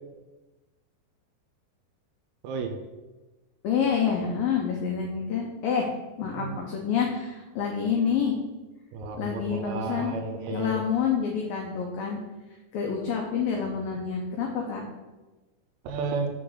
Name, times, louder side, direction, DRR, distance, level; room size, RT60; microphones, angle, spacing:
voice 1, 2.4-2.7 6.3-6.5 8.9-10.8 15.8-16.3, right 3 dB, 85° right, 5 dB, 3.1 m, -32 dB
voice 2, 3.6-5.9 6.2-8.4 9.2-10.1 10.5-12.2 12.7-14.8, left 7 dB, 85° left, 1 dB, 2.0 m, -27 dB
6.7 x 6.4 x 3.9 m, 1.2 s
omnidirectional pair, 5.1 m